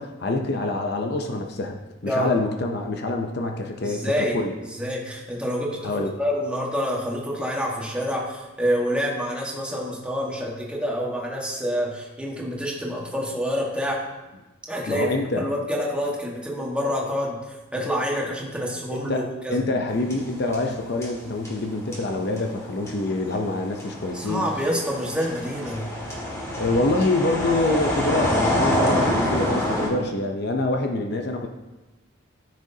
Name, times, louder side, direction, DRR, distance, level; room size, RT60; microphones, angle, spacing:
voice 1, 0.0-4.5 5.8-6.1 14.9-15.5 18.9-19.2 19.5-24.4 26.6-31.5, left 2 dB, 55° left, 3 dB, 0.7 m, -26 dB
voice 2, 3.8-4.4 4.7-14.0 14.7-15.1 15.4-19.6 24.1-25.9, equal, 5° right, -3 dB, 1.5 m, -27 dB
sound 1, 19.9-20.8 21.0-29.9, left 1 dB, 15° left, 2.1 m, -26 dB
14.5 x 6.3 x 2.8 m, 1.1 s
head